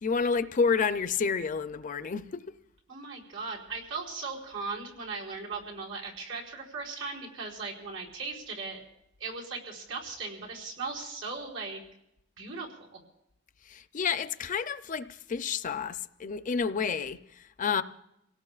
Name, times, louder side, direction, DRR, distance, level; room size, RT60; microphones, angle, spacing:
voice 1, 0.0-2.6 13.7-17.8, left 5 dB, 40° left, 0.5 m, -30 dB
voice 2, 2.9-8.8 9.2-11.8 12.4-13.0, right 4 dB, 90° right, 4.7 m, -38 dB
28.0 x 18.0 x 2.4 m
head